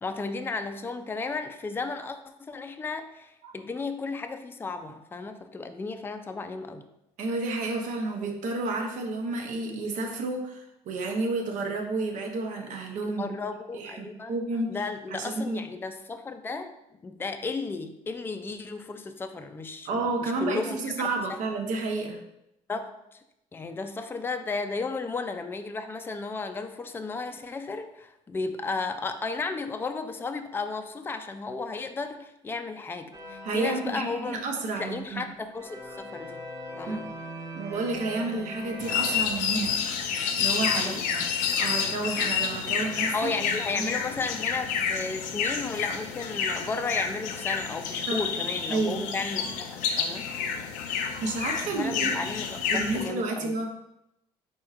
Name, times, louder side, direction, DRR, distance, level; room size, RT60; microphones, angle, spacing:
voice 1, 0.0-6.9 13.0-14.3 14.7-16.7 17.0-20.8 21.3-21.4 22.7-23.2 23.5-34.4 34.8-36.4 36.8-37.1 40.6-41.0 43.1-50.3 51.6-53.6, left 4 dB, 15° left, 8 dB, 0.4 m, -34 dB
voice 2, 7.2-13.4 13.7-14.7 15.1-15.6 19.8-22.2 33.4-35.3 36.9-37.0 37.5-41.3 41.5-43.3 43.8-43.9 48.1-48.3 48.7-49.1 50.9-52.3 52.7-53.7, right 3 dB, 75° right, 2 dB, 0.9 m, -31 dB
sound 1, 33.1-35.1 35.5-39.2, equal, 30° right, 1.1 m, -41 dB
sound 2, 38.8-53.1, left 7 dB, 90° left, 0.5 m, -29 dB
4.5 x 4.3 x 2.4 m, 0.84 s
cardioid pair, 100°, 13 cm